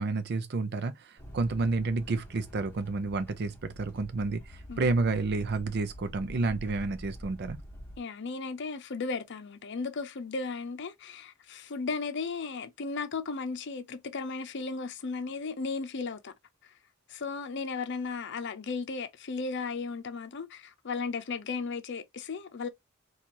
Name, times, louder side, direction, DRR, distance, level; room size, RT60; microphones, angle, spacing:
voice 1, 0.0-7.6, right 3 dB, 55° right, 0.5 m, -30 dB
sound 1, 1.2-8.0, equal, 10° left, 0.9 m, -46 dB
voice 2, 8.0-16.3 16.6-16.7 17.1-22.7, left 4 dB, 60° left, 0.6 m, -35 dB
4.2 x 2.4 x 2.9 m
head